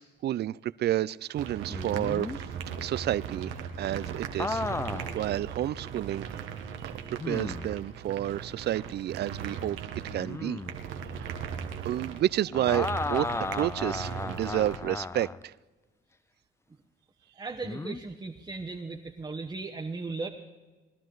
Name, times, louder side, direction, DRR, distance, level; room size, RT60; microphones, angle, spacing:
voice 1, 0.0-2.3 2.8-3.5 3.8-4.6 4.9-6.3 6.8-9.8 10.1-10.6 11.2-11.4 11.8-13.3 13.5-15.5, right 13 dB, 55° right, 0.4 m, -30 dB
sound 1, 1.4-14.8, right 7 dB, 85° right, 1.2 m, -38 dB
sound 2, 1.7-2.4 4.4-5.2 5.8-5.9 7.2-7.8 10.1-10.8 12.5-15.4 17.6-18.0, left 3 dB, 15° left, 0.4 m, -34 dB
voice 2, 17.3-20.3, right 3 dB, 20° right, 1.0 m, -37 dB
20.5 x 12.0 x 3.9 m
cardioid pair, 90°, 20 cm